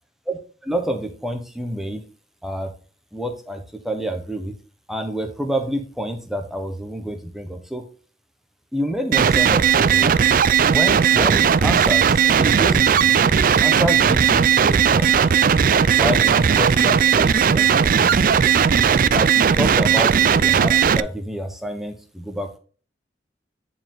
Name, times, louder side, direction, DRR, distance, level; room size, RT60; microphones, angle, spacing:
voice 1, 0.3-2.0 2.4-2.7 3.1-4.5 4.9-7.8 8.7-10.2 10.7-13.2 13.6-15.1 16.0-18.3 19.1-22.6, equal, ahead, 4 dB, 1.2 m, -28 dB
sound 1, 9.1-21.0, right 7 dB, 50° right, 0.4 m, -17 dB
9.5 x 4.9 x 3.9 m, 0.38 s
head